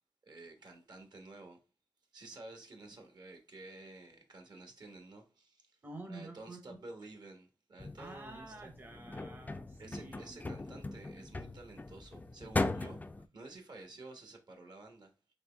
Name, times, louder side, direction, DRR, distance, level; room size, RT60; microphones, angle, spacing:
voice 1, 0.2-1.6 2.1-5.8 6.1-8.7 9.8-13.0 13.3-15.1, right 2 dB, 60° right, 1.3 m, -51 dB
voice 2, 5.8-6.9 8.0-10.4, right 2 dB, 25° right, 0.8 m, -49 dB
sound 1, 7.8-13.3, left 2 dB, 20° left, 0.4 m, -39 dB
4.3 x 3.0 x 3.4 m
cardioid pair, 65°, 8 cm